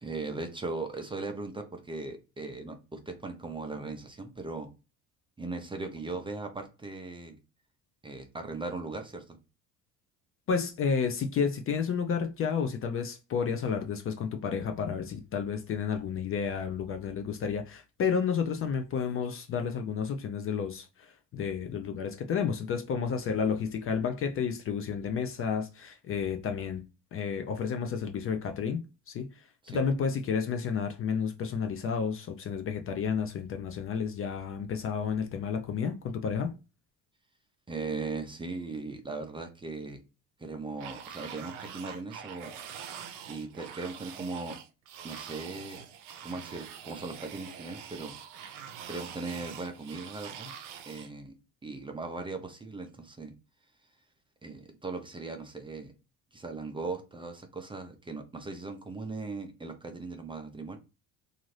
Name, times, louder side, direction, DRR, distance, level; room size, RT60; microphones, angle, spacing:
voice 1, 0.0-4.7 5.4-7.4 8.0-9.4 29.6-29.8 37.7-40.0 40.4-42.5 43.3-44.6 45.0-45.8 46.2-48.1 48.9-50.5 50.8-51.4 51.6-53.3 54.4-55.9 56.3-60.8, right 3 dB, 15° right, 0.5 m, -38 dB
voice 2, 10.5-26.8 27.1-29.3 29.7-36.5, left 6 dB, 40° left, 0.4 m, -31 dB
sound 1, 40.8-51.1, right 8 dB, 90° right, 0.6 m, -44 dB
2.6 x 2.5 x 3.1 m
supercardioid pair, 95°, 36 cm